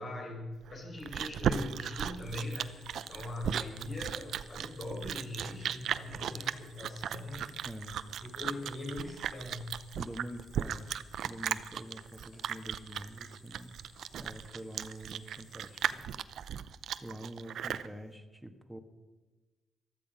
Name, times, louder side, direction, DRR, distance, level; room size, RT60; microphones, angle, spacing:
voice 1, 0.0-7.6 8.2-9.8, left 2 dB, 45° left, 1 dB, 4.7 m, -41 dB
Chewing mastication, 0.6-17.9, right 9 dB, 70° right, 0.5 m, -36 dB
sound 1, 2.2-16.0, left 3 dB, 75° left, 3.7 m, -59 dB
voice 2, 7.6-8.0 10.0-10.9 11.2-16.0 17.0-18.8, right 1 dB, 5° right, 5 dB, 1.5 m, -46 dB
15.0 x 12.5 x 5.3 m, 1.2 s
cardioid pair, 90°, 0 cm